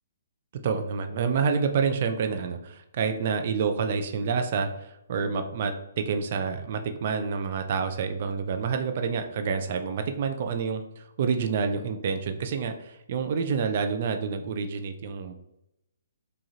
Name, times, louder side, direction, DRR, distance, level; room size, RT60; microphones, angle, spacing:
voice 1, 0.6-15.4, right 5 dB, 45° right, 6 dB, 0.5 m, -28 dB
4.8 x 2.5 x 2.8 m, 0.86 s
figure-of-eight pair, 130°, 0 cm